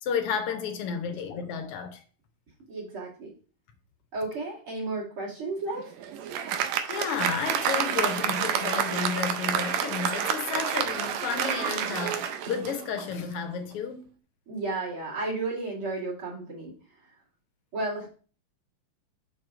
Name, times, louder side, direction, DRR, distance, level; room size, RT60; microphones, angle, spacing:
voice 1, 0.0-2.0 6.9-14.1, left 7 dB, 80° left, 1.3 m, -32 dB
voice 2, 2.7-3.3 4.1-5.9 14.5-16.7 17.7-18.1, right 2 dB, 45° right, 2.8 m, -33 dB
Applause, 5.7-13.2, right 8 dB, 80° right, 1.8 m, -29 dB
6.0 x 4.8 x 3.6 m
omnidirectional pair, 3.3 m